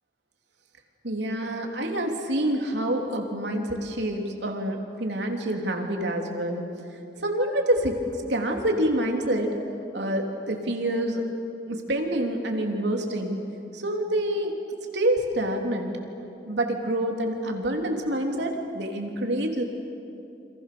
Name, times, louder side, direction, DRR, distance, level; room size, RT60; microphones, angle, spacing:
voice 1, 1.0-6.6 7.2-8.0 8.3-9.6 9.9-11.2 11.7-13.4 13.7-14.5 14.9-15.9 16.5-19.6, right 1 dB, 80° right, 2 dB, 3.3 m, -27 dB
28.5 x 27.5 x 7.0 m, 2.8 s
head